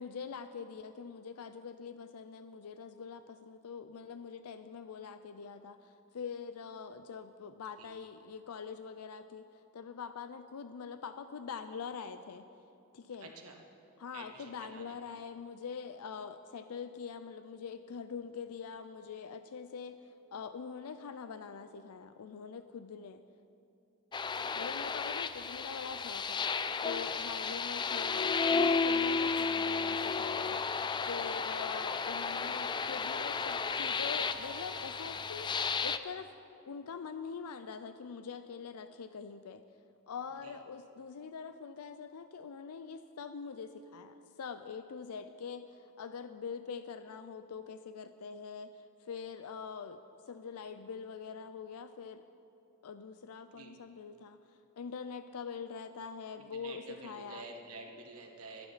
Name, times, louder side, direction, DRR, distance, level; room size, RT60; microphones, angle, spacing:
voice 1, 0.0-12.5 12.9-13.3 14.0-23.2 24.6-26.4 26.8-30.6 31.0-35.5 35.8-36.3 36.7-39.6 40.1-50.0 50.3-52.2 52.8-54.4 54.8-57.5, left 6 dB, 85° left, 10 dB, 0.5 m, -44 dB
voice 2, 13.2-13.6 14.1-15.0 24.3-24.5 27.2-27.3 40.4-40.5 53.5-53.7 56.3-58.7, right 3 dB, 75° right, 1 dB, 1.6 m, -49 dB
sound 1, 24.1-36.0, left 5 dB, 20° left, 0.3 m, -33 dB
Keyboard (musical), 34.1-36.6, right 8 dB, 35° right, 1.3 m, -54 dB
26.5 x 8.9 x 4.1 m, 2.8 s
head